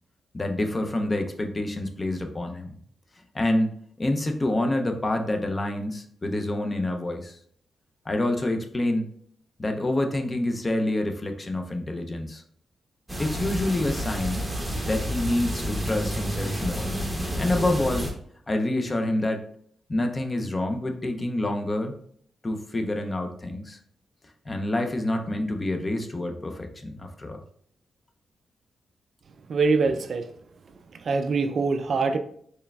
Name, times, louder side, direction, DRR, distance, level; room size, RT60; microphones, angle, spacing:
voice 1, 0.3-2.7 3.3-7.4 8.1-9.1 9.6-12.4 13.2-14.4 14.8-16.9 17.2-18.1 18.5-19.4 19.9-21.9 22.4-23.8 24.5-27.4, left 1 dB, 25° left, 5 dB, 0.5 m, -27 dB
sound 1, 13.1-18.1, equal, 5° right, 0.7 m, -30 dB
voice 2, 29.5-30.3 31.0-32.2, right 4 dB, 55° right, 8 dB, 0.3 m, -23 dB
4.4 x 3.2 x 2.3 m, 0.63 s
cardioid pair, 110°, 0 cm